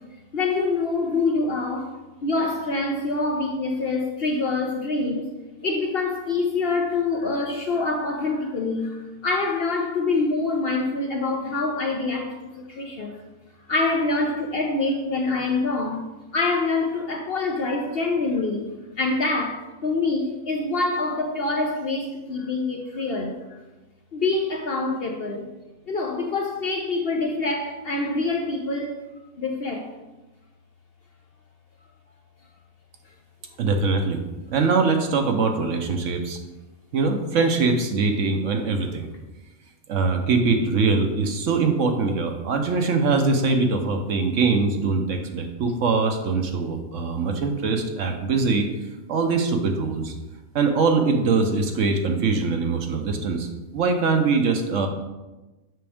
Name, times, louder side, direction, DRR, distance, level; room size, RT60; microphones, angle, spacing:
voice 1, 0.3-5.3 5.6-13.2 13.7-23.6 24.1-25.5 25.9-29.0 29.4-29.9, left 3 dB, 55° left, 0.7 m, -25 dB
voice 2, 33.6-34.2 34.5-36.4 36.9-39.1 39.9-48.7 49.1-50.1 50.5-53.5 53.7-54.9, right 4 dB, 65° right, 1.0 m, -22 dB
7.7 x 6.0 x 3.5 m
omnidirectional pair, 1.5 m